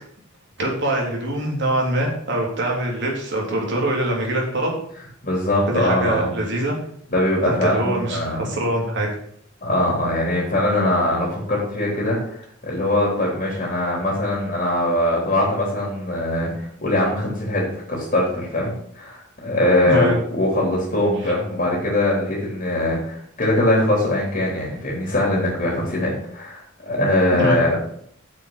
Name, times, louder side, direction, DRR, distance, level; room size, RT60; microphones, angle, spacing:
voice 1, 0.6-4.7 5.7-6.7 7.4-9.1 19.8-20.2 21.2-21.3 27.3-27.6, right 1 dB, 60° right, 0 dB, 3.4 m, -23 dB
voice 2, 5.2-6.3 7.1-8.5 9.6-27.8, left 1 dB, 40° left, -3 dB, 3.7 m, -22 dB
8.7 x 6.7 x 6.7 m, 0.66 s
head